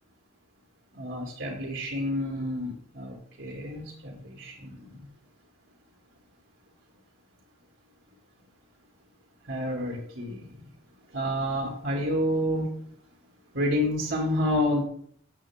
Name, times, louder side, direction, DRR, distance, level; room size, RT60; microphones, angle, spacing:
voice 1, 0.9-5.1 9.5-10.5 11.1-12.7 13.5-14.8, left 1 dB, 70° right, -2 dB, 2.6 m, -29 dB
14.5 x 7.8 x 3.6 m, 0.65 s
head